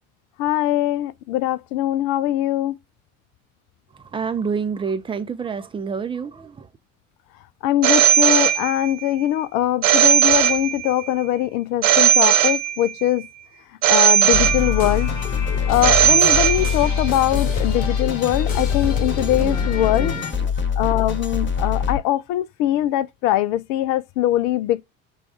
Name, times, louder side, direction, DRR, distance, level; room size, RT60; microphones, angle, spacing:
voice 1, 0.4-2.8 7.6-13.3 13.9-15.1 15.7-20.1 20.8-24.8, left 13 dB, 45° left, 0.4 m, -22 dB
voice 2, 3.9-6.7 18.9-20.5 20.8-21.0, right 5 dB, 15° right, 0.4 m, -29 dB
Telephone, 7.8-9.1 9.8-11.1 11.8-13.1 13.8-15.1 15.8-17.1, right 11 dB, 65° right, 0.7 m, -17 dB
sound 1, 14.2-20.3, left 6 dB, 70° left, 0.9 m, -31 dB
sound 2, 14.3-22.0, left 6 dB, 30° left, 1.1 m, -24 dB
5.7 x 2.3 x 3.6 m
figure-of-eight pair, 55°, 41 cm